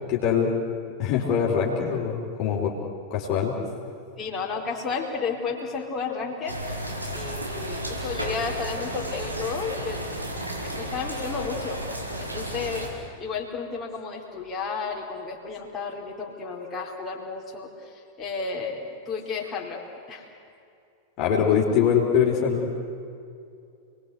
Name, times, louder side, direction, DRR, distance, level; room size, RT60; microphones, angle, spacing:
voice 1, 0.1-0.5 1.0-2.7 3.1-3.6 21.2-22.8, left 7 dB, 40° left, -2 dB, 3.9 m, -23 dB
voice 2, 4.2-6.6 7.1-10.0 10.6-12.9 13.2-20.3, left 5 dB, 20° left, -2 dB, 4.4 m, -32 dB
sound 1, 6.5-12.9, right 1 dB, 85° right, 4.2 m, -33 dB
29.5 x 20.5 x 8.2 m, 2.5 s
figure-of-eight pair, 90°, 0 cm